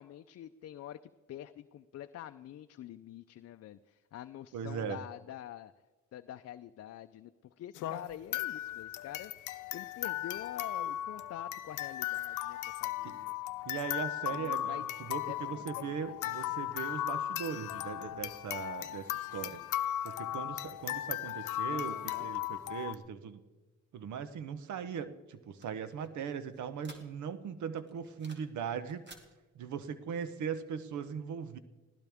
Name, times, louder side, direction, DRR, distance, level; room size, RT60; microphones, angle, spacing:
voice 1, 0.0-5.7 6.1-13.6 14.3-14.8 15.3-16.8 21.7-22.3, left 12 dB, 55° left, 9 dB, 0.6 m, -47 dB
voice 2, 4.5-5.0 13.0-13.1 13.6-19.6 20.0-23.4 23.9-29.0 29.6-31.6, right 7 dB, 70° right, 12 dB, 1.0 m, -39 dB
sound 1, 7.8-23.0, left 13 dB, 90° left, 0.7 m, -37 dB
sound 2, 24.9-27.5 27.8-28.6 28.8-29.3, right 2 dB, 35° right, 2.4 m, -56 dB
21.0 x 16.0 x 3.6 m, 1.2 s
cardioid pair, 90°, 30 cm